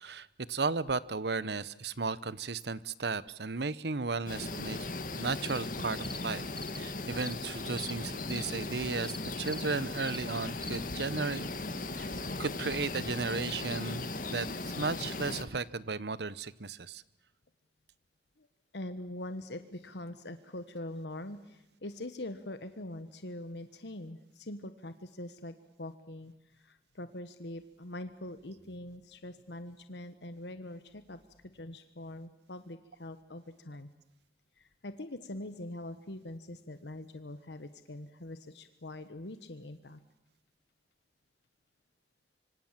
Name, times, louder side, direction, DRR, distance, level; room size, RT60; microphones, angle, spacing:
voice 1, 0.0-4.8 5.2-6.5 6.7-11.5 11.9-12.1 12.4-14.5 14.8-17.0, right 4 dB, 70° right, 18 dB, 0.9 m, -35 dB
sound 1, 4.3-15.4, left 2 dB, 50° left, 2.2 m, -38 dB
sound 2, 5.4-5.6 6.0-6.2 6.5-6.8 7.2-7.3 7.8-7.9 8.3-8.4 9.0-9.2 9.5-9.6 10.0-10.2 10.6-10.8, left 2 dB, 5° left, 0.9 m, -44 dB
voice 2, 18.7-33.9 34.6-40.0, left 1 dB, 80° left, 10 dB, 1.3 m, -43 dB
25.5 x 25.0 x 7.5 m, 0.87 s
head